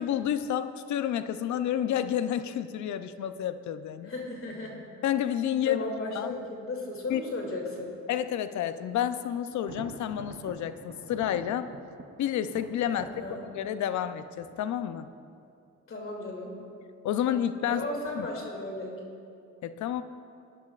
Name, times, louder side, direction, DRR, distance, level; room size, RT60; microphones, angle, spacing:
voice 1, 0.0-4.1 5.0-5.8 6.1-6.3 7.1-7.2 8.1-11.7 12.2-13.1 13.5-15.1 17.0-17.8 18.1-18.3 19.6-20.0, left 10 dB, 70° left, 11 dB, 0.6 m, -30 dB
voice 2, 4.0-4.8 5.6-7.9 12.9-13.4 15.9-16.5 17.7-19.0, left 2 dB, 45° left, 0 dB, 2.7 m, -35 dB
Thunder, 9.5-15.3, right 5 dB, 45° right, 0.9 m, -48 dB
20.0 x 10.5 x 2.4 m, 2.5 s
cardioid pair, 90°, 30 cm